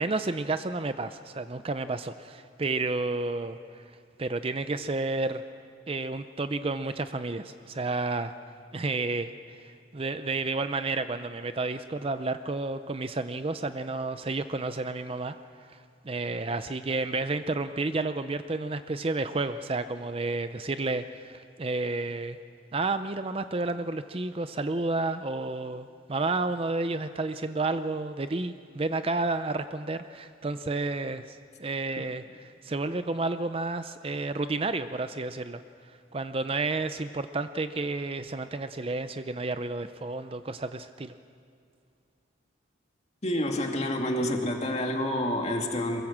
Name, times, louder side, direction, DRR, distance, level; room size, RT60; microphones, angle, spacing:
voice 1, 0.0-3.8 4.2-5.4 5.9-8.3 8.7-22.4 22.7-35.6 36.1-41.1, right 3 dB, 30° right, 10 dB, 0.5 m, -31 dB
voice 2, 43.2-46.0, left 1 dB, 35° left, 2 dB, 2.3 m, -28 dB
23.0 x 21.5 x 7.4 m, 2.3 s
head